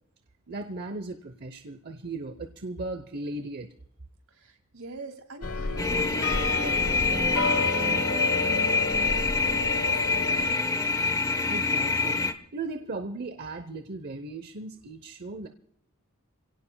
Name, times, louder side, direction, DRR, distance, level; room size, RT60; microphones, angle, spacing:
voice 1, 0.5-3.7 11.5-12.2 12.5-15.5, right 2 dB, 45° right, 8 dB, 0.9 m, -37 dB
voice 2, 4.3-11.1, right 2 dB, 75° right, 6 dB, 2.7 m, -43 dB
sound 1, 5.4-10.5, left 3 dB, 70° left, 1.1 m, -31 dB
sound 2, 5.8-12.3, left 4 dB, 15° left, 1.1 m, -26 dB
28.5 x 17.0 x 2.3 m, 0.66 s
head